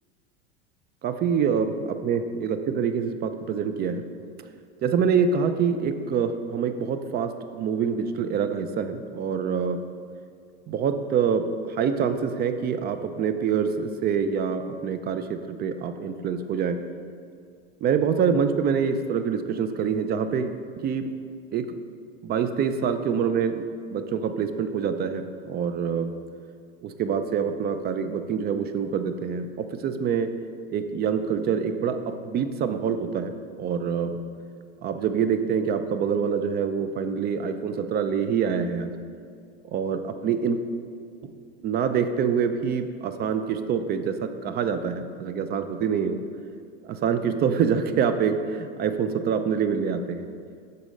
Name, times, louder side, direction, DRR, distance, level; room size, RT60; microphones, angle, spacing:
voice 1, 1.0-1.7 2.0-4.0 4.8-9.8 10.7-16.8 17.8-20.5 20.8-21.0 21.5-21.8 22.2-23.6 23.9-26.1 26.8-30.3 30.7-33.3 33.6-34.2 34.8-38.9 39.7-40.6 41.2-41.3 41.6-46.2 46.8-50.3, right 6 dB, 35° right, 9 dB, 0.5 m, -26 dB
12.0 x 4.1 x 5.3 m, 2.2 s
supercardioid pair, 115°, 30 cm